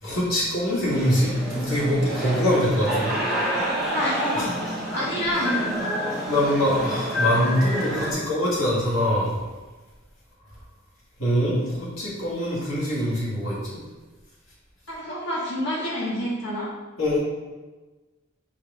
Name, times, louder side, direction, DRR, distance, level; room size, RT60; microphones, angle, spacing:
voice 1, 0.0-3.2 4.3-4.4 6.3-9.4 11.2-13.8 17.0-17.2, equal, 85° left, -6 dB, 2.1 m, -23 dB
sound 1, 0.8-8.1, equal, ahead, 2.1 m, -28 dB
voice 2, 3.9-4.5 4.9-5.9 14.9-16.7, equal, 55° left, -7 dB, 1.9 m, -27 dB
7.4 x 4.8 x 3.7 m, 1.2 s
head